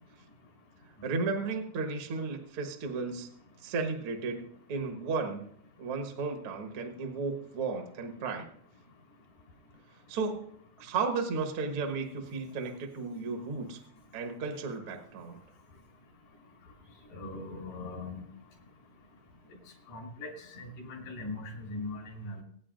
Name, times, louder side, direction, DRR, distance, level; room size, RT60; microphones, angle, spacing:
voice 1, 1.0-3.3 3.6-4.4 4.7-5.5 5.8-8.5 10.1-10.5 10.8-13.8 14.1-15.4, right 4 dB, 50° right, 4 dB, 1.9 m, -34 dB
voice 2, 17.1-18.2 19.9-22.4, left 2 dB, 75° left, 0 dB, 5.3 m, -40 dB
24.5 x 9.5 x 2.5 m, 0.64 s
omnidirectional pair, 3.6 m